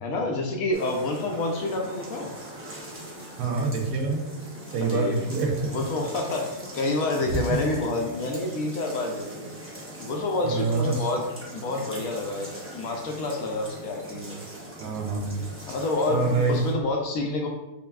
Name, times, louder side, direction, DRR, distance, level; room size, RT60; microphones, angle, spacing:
voice 1, 0.0-2.3 4.8-5.3 5.6-9.5 10.0-11.2 11.5-14.4 15.7-17.5, left 2 dB, 70° left, 1 dB, 0.9 m, -28 dB
sound 1, 0.7-16.7, right 1 dB, 20° right, 0.3 m, -41 dB
voice 2, 3.4-4.3 4.7-5.7 10.4-11.0 14.8-15.5 16.1-16.6, right 4 dB, 85° right, 2 dB, 1.2 m, -26 dB
5.2 x 2.3 x 2.2 m, 0.99 s
omnidirectional pair, 1.7 m